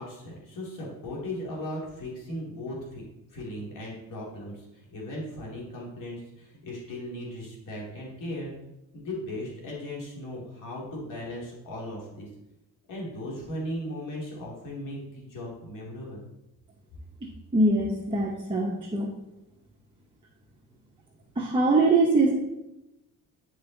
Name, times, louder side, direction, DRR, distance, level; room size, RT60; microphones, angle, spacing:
voice 1, 0.0-3.0 3.3-8.5 8.9-12.3 12.9-16.2, left 1 dB, 75° left, -4 dB, 2.5 m, -37 dB
voice 2, 17.5-19.1 21.4-22.3, right 2 dB, 15° right, -2 dB, 0.9 m, -22 dB
9.4 x 5.6 x 3.9 m, 0.94 s
cardioid pair, 145°, 33 cm